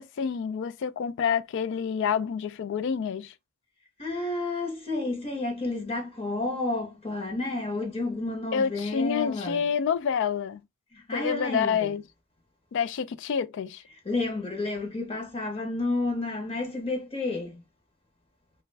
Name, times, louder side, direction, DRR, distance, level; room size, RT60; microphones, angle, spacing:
voice 1, 0.0-3.3 8.5-10.6 11.1-12.0 12.7-13.8, left 7 dB, 60° left, 0.3 m, -28 dB
voice 2, 4.0-9.6 10.9-11.8 14.0-17.6, left 2 dB, 25° left, 0.8 m, -31 dB
3.3 x 2.2 x 3.2 m
head